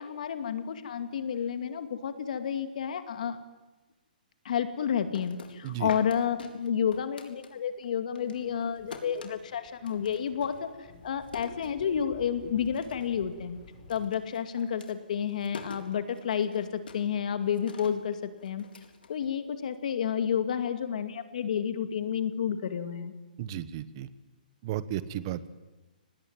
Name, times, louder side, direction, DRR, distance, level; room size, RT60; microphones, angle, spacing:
voice 1, 0.0-3.4 4.4-13.6 13.9-18.6 19.1-23.1, left 8 dB, 55° left, 9 dB, 2.4 m, -30 dB
sound 1, 4.9-7.9 8.1-12.3 12.6-13.2 13.5-19.7, left 4 dB, 85° left, 3.9 m, -46 dB
sound 2, 8.2-14.1, left 4 dB, 30° left, 5.9 m, -53 dB
voice 2, 23.4-24.1 24.6-25.5, right 12 dB, 30° right, 15 dB, 1.2 m, -34 dB
24.5 x 19.5 x 9.5 m, 1.1 s
hypercardioid pair, 170°, 5 cm